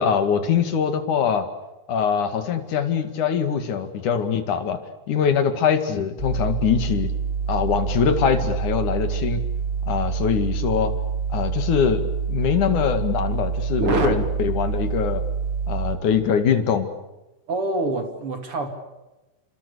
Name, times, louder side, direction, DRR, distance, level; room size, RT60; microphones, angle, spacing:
voice 1, 0.0-1.5 1.9-4.8 5.1-7.1 7.5-9.4 9.9-10.9 11.3-15.2 15.7-16.9, left 7 dB, 60° left, 9 dB, 3.5 m, -23 dB
sound 1, 6.2-16.0, right 6 dB, 20° right, 6.3 m, -26 dB
voice 2, 13.8-14.3 17.5-18.7, right 2 dB, 40° right, 7 dB, 3.2 m, -25 dB
29.0 x 26.0 x 6.9 m, 1.0 s
omnidirectional pair, 4.1 m